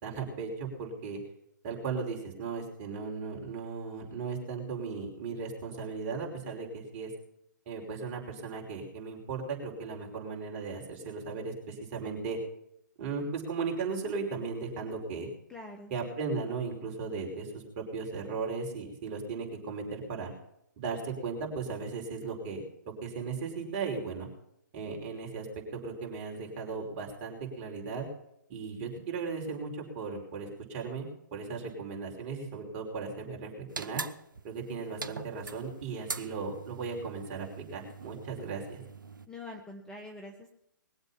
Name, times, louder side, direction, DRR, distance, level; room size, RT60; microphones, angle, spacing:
voice 1, 0.0-1.2 1.6-7.1 7.7-12.4 13.0-15.3 15.9-20.3 20.8-22.6 23.0-24.3 24.7-25.5 25.7-28.1 28.5-33.5 33.8-34.0 34.4-38.8, right 4 dB, 35° right, 1 dB, 5.1 m, -36 dB
voice 2, 15.5-15.9 39.3-40.5, left 2 dB, 5° left, 2 dB, 1.3 m, -44 dB
sound 1, 33.7-39.3, right 4 dB, 80° right, 0.9 m, -42 dB
21.5 x 8.0 x 5.7 m, 0.75 s
figure-of-eight pair, 135°, 11 cm